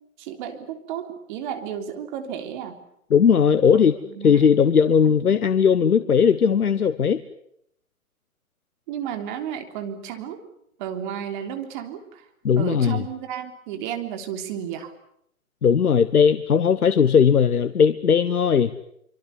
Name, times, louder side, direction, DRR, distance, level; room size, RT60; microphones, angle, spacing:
voice 1, 0.2-2.8 4.0-4.4 5.0-5.2 8.9-10.4 10.8-12.2 12.6-14.9, right 9 dB, 35° right, 7 dB, 3.4 m, -33 dB
voice 2, 3.1-3.9 4.2-7.2 12.4-13.0 15.6-18.7, left 7 dB, 80° left, 12 dB, 1.4 m, -18 dB
25.5 x 25.0 x 8.4 m, 0.72 s
hypercardioid pair, 140°, 43 cm